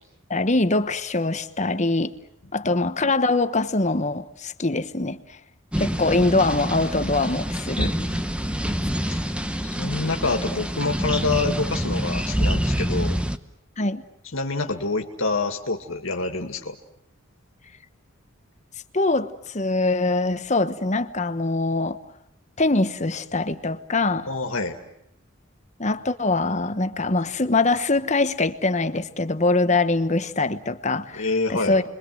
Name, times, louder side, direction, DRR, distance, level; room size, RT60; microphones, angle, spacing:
voice 1, 0.3-2.1 2.5-5.4 5.8-7.9 9.8-10.0 13.8-14.0 18.9-22.0 22.6-24.3 25.8-31.8, left 2 dB, 35° left, 11 dB, 1.1 m, -23 dB
sound 1, 5.7-13.4, equal, 5° right, 1.0 m, -26 dB
voice 2, 7.8-8.2 9.1-9.2 9.8-13.2 14.3-16.8 24.3-24.8 31.1-31.8, left 3 dB, 75° left, 4 dB, 2.2 m, -27 dB
30.0 x 23.0 x 7.8 m, 0.78 s
head